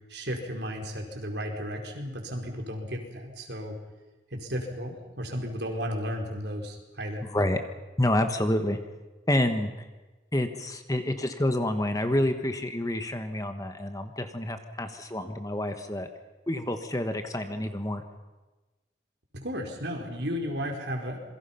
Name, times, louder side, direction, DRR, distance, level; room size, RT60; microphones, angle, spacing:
voice 1, 0.1-3.8 4.3-7.3 19.3-21.2, equal, 65° right, 2 dB, 4.4 m, -34 dB
voice 2, 8.0-8.8 9.3-9.7 10.3-16.1 16.5-18.0, left 1 dB, 20° left, 7 dB, 1.4 m, -28 dB
27.5 x 22.5 x 5.8 m, 1.2 s
head